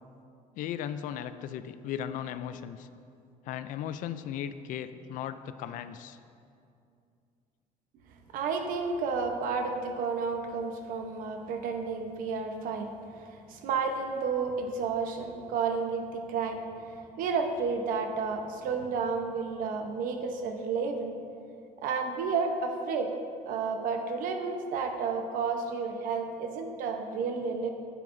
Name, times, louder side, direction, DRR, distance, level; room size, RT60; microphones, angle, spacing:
voice 1, 0.6-2.9 3.4-6.2, left 9 dB, 70° left, 12 dB, 0.4 m, -37 dB
voice 2, 8.3-12.9 13.2-16.6 17.2-21.1 21.8-23.1 23.5-27.7, right 5 dB, 75° right, 5 dB, 0.9 m, -31 dB
10.5 x 9.2 x 2.6 m, 2.5 s
cardioid pair, 160°, 14 cm